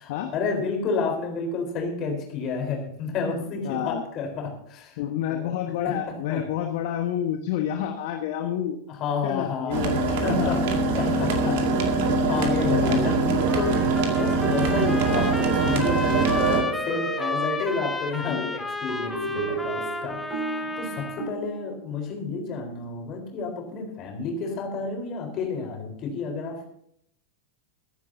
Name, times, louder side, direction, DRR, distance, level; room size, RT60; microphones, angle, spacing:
voice 1, 0.0-5.0 5.3-5.6 5.8-6.4 8.9-9.9 10.2-10.6 10.9-11.6 12.3-26.7, left 4 dB, 35° left, 3 dB, 4.1 m, -30 dB
voice 2, 3.6-4.0 5.0-8.8 9.2-10.5 11.3-11.6 12.0-12.2 12.6-13.1 18.2-18.5, left 10 dB, 50° left, 5 dB, 1.3 m, -29 dB
sound 1, 9.7-16.6, right 3 dB, 50° right, 2.3 m, -23 dB
Trumpet, 13.4-21.3, left 2 dB, 5° left, 1.4 m, -32 dB
sound 2, 15.9-18.1 18.9-22.0, right 3 dB, 25° right, 5.9 m, -33 dB
23.0 x 10.5 x 2.8 m, 0.68 s
figure-of-eight pair, 90°, 0 cm